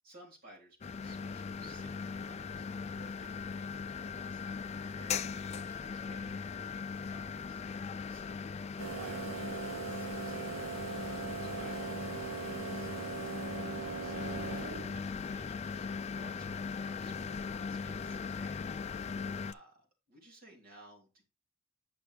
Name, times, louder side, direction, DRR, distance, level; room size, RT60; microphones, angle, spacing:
voice 1, 0.0-2.7 3.0-7.6 8.1-8.5 8.9-11.1 11.4-14.5 14.9-15.9 16.1-18.6 19.4-21.2, right 2 dB, 45° right, -2 dB, 3.5 m, -58 dB
sound 1, 0.8-19.5, left 5 dB, 30° left, 0.3 m, -39 dB
sound 2, 8.8-15.1, right 5 dB, 70° right, 1.1 m, -40 dB
9.6 x 6.0 x 3.3 m, 0.30 s
head